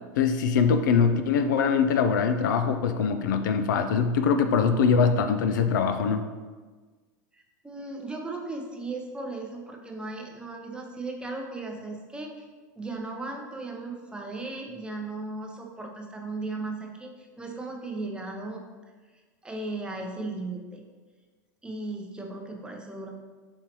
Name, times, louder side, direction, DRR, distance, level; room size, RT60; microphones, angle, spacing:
voice 1, 0.2-6.3, left 6 dB, 75° left, 8 dB, 0.4 m, -23 dB
voice 2, 7.3-12.3 12.8-18.6 19.4-20.8 21.6-23.1, right 2 dB, 10° right, 1 dB, 0.6 m, -36 dB
4.3 x 3.7 x 2.9 m, 1.4 s
hypercardioid pair, 110°, 10 cm